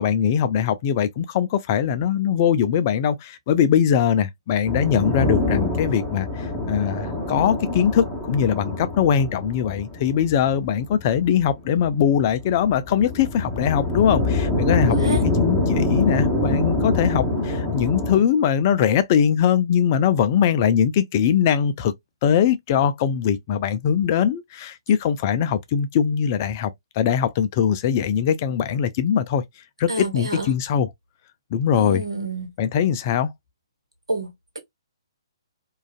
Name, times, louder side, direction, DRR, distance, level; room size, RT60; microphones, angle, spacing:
voice 1, 0.0-21.9 22.2-30.9 31.5-32.0 32.6-33.3, left 8 dB, 35° left, 0.3 m, -21 dB
sound 1, 4.6-18.2, left 2 dB, 5° right, 1.1 m, -25 dB
voice 2, 14.8-15.2 29.9-30.5 31.7-32.5 34.1-34.3, right 2 dB, 75° right, 1.0 m, -28 dB
2.4 x 2.3 x 2.3 m
figure-of-eight pair, 130°, 3 cm